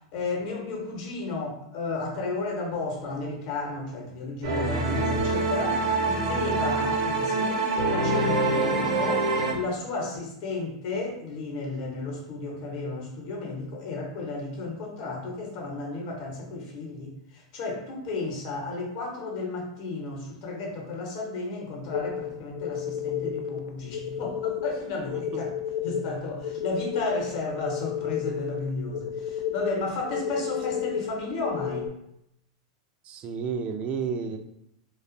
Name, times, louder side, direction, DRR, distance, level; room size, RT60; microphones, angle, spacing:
voice 1, 0.1-25.5 25.8-31.9, left 3 dB, 55° left, -1 dB, 0.9 m, -33 dB
sound 1, 4.4-9.5, right 2 dB, 75° right, 0.7 m, -25 dB
sound 2, 21.9-31.9, left 9 dB, 85° left, 0.3 m, -32 dB
voice 2, 33.1-34.4, right 6 dB, 35° right, 7 dB, 0.3 m, -31 dB
2.5 x 2.3 x 2.5 m, 0.77 s
hypercardioid pair, 125°, 3 cm